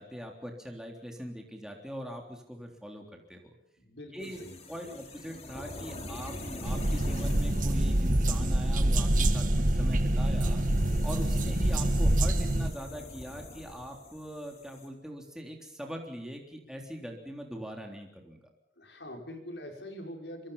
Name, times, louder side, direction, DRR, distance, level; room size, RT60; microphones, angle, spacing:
voice 1, 0.0-3.5 4.1-4.4 4.7-10.6 11.0-18.4, equal, 5° right, 1 dB, 3.5 m, -42 dB
voice 2, 3.8-5.0 11.4-11.6 18.8-20.5, equal, 85° left, 2 dB, 5.9 m, -44 dB
sound 1, 4.2-14.9, left 1 dB, 40° left, 4.2 m, -45 dB
sound 2, 6.6-12.7, right 1 dB, 50° right, 1.6 m, -26 dB
25.5 x 24.0 x 5.7 m, 0.78 s
head